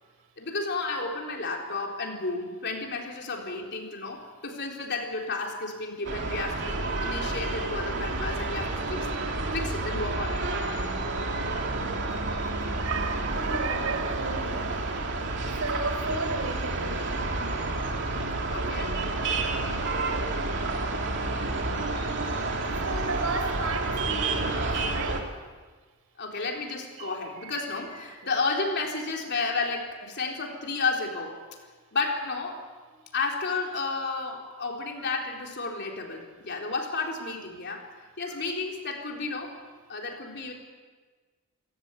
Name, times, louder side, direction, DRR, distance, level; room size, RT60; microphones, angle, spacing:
voice 1, 0.4-9.1 9.5-10.4 18.5-18.9 26.2-31.4 31.9-32.6 33.1-37.8 38.2-39.5 39.9-40.5, left 3 dB, 50° left, 1 dB, 3.9 m, -32 dB
sound 1, 6.0-25.2, right 2 dB, 55° right, 2.8 m, -30 dB
voice 2, 12.7-17.1 22.8-25.4 26.9-27.6 28.0-28.3 38.2-38.4, right 3 dB, 80° right, 6 dB, 3.8 m, -35 dB
28.0 x 17.0 x 8.3 m, 1.4 s
head